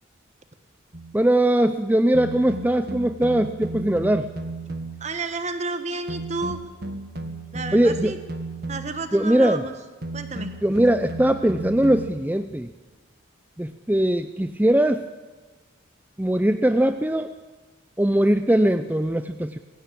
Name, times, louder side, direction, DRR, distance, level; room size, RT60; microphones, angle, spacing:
sound 1, 0.9-1.2 2.1-5.1 6.1-9.1 10.0-12.2, right 2 dB, 50° right, 1.8 m, -34 dB
voice 1, 1.1-4.3 7.7-8.2 9.1-9.6 10.6-12.7 13.6-15.1 16.2-17.3 18.0-19.6, right 1 dB, 10° right, 9 dB, 0.6 m, -20 dB
voice 2, 5.0-6.6 7.5-8.2 8.7-9.7 10.1-10.5, right 3 dB, 35° right, 8 dB, 1.3 m, -31 dB
22.0 x 16.5 x 8.6 m, 1.3 s
head